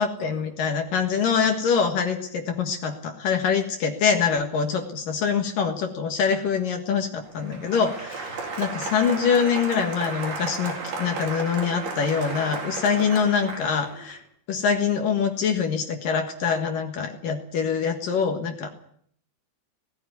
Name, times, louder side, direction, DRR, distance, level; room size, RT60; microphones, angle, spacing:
voice 1, 0.0-14.2 14.5-18.7, left 6 dB, 60° left, 5 dB, 2.5 m, -24 dB
Applause, 7.2-14.2, right 3 dB, 50° right, 5.6 m, -34 dB
19.0 x 15.0 x 9.4 m, 0.63 s
omnidirectional pair, 5.8 m